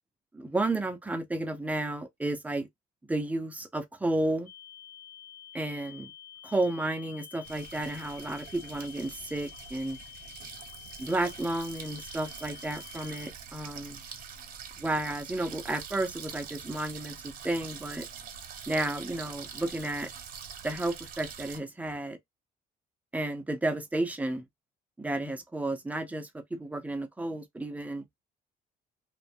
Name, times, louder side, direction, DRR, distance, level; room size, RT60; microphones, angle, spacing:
voice 1, 0.3-2.7 3.1-4.5 5.5-6.1 6.4-10.0 11.0-14.0 14.8-17.2 17.4-18.1 18.7-20.1 20.6-22.2 23.1-24.5 25.0-28.0, right 2 dB, 10° right, 0.5 m, -32 dB
sound 1, 4.5-13.3, left 10 dB, 55° left, 1.0 m, -49 dB
sound 2, 7.4-21.6, right 6 dB, 55° right, 0.9 m, -45 dB
2.5 x 2.2 x 2.6 m
cardioid pair, 110°, 17 cm